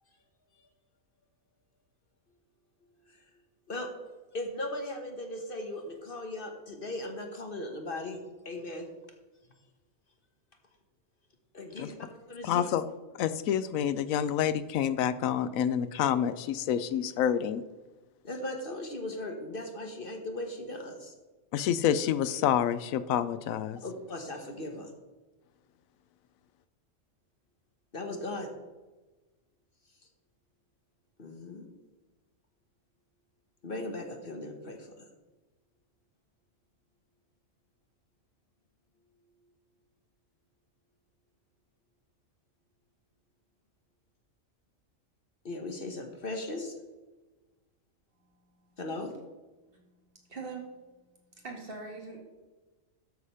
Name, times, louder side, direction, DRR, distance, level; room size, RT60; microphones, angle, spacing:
voice 1, 4.3-8.2 8.4-8.9 11.5-11.9 12.3-12.6 18.2-21.1 23.8-24.9 27.9-28.5 31.2-31.7 33.6-35.1 45.4-46.7 48.8-49.1, left 1 dB, 45° left, 4 dB, 1.2 m, -38 dB
voice 2, 12.4-12.8 13.2-17.6 21.5-23.8, left 9 dB, 85° left, 14 dB, 1.0 m, -28 dB
voice 3, 50.3-50.7 51.4-52.2, right 4 dB, 45° right, -1 dB, 2.2 m, -41 dB
13.0 x 5.0 x 5.5 m, 1.2 s
omnidirectional pair, 1.4 m